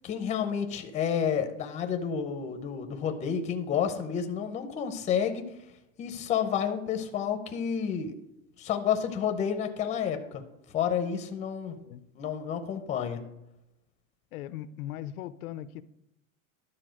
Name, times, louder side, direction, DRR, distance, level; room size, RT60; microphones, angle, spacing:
voice 1, 0.0-5.4 6.0-8.1 8.6-10.4 10.7-11.8 12.2-13.2, left 8 dB, 15° left, 7 dB, 0.6 m, -30 dB
voice 2, 14.3-15.8, left 12 dB, 85° left, 15 dB, 0.7 m, -39 dB
11.5 x 4.2 x 6.3 m, 0.87 s
supercardioid pair, 150°, 42 cm